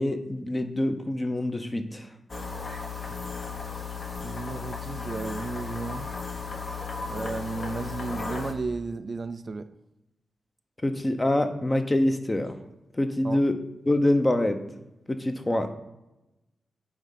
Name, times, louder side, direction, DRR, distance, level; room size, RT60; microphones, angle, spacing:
voice 1, 0.0-2.1 10.8-12.5 12.9-13.5 13.9-14.6 15.1-15.7, left 1 dB, 20° left, 7 dB, 0.8 m, -25 dB
sound 1, 2.3-8.5, left 4 dB, 45° left, 1.1 m, -35 dB
voice 2, 4.2-6.1 7.1-9.7 13.2-13.4, right 4 dB, 45° right, 10 dB, 0.4 m, -34 dB
8.9 x 3.7 x 5.7 m, 0.97 s
wide cardioid pair, 95°, 0 cm